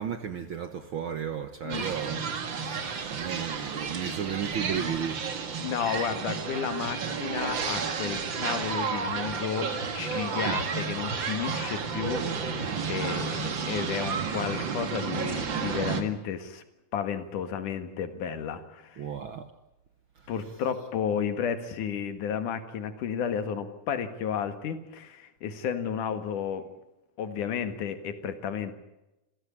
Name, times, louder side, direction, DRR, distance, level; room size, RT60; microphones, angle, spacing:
voice 1, 0.0-2.2 2.6-5.2 10.5-10.6 19.0-19.5, right 8 dB, 60° right, 1.4 m, -34 dB
sound 1, 1.7-16.0, right 5 dB, 45° right, 2.2 m, -32 dB
voice 2, 5.6-16.6 16.9-19.1 20.3-26.7 27.2-28.7, left 7 dB, 80° left, 3.2 m, -32 dB
27.0 x 16.0 x 8.7 m
omnidirectional pair, 3.5 m